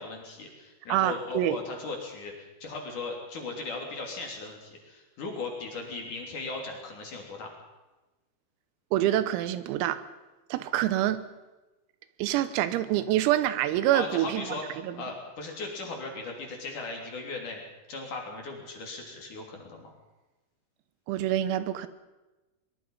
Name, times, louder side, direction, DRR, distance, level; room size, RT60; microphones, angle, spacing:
voice 1, 0.0-7.5 13.9-17.6 17.9-19.9, left 3 dB, 45° left, 1 dB, 4.0 m, -38 dB
voice 2, 0.9-1.6 8.9-10.0 10.5-11.2 12.2-14.4 14.8-15.0 21.1-21.9, right 13 dB, 90° right, 13 dB, 3.8 m, -26 dB
23.0 x 22.0 x 5.6 m, 1.1 s
omnidirectional pair, 5.9 m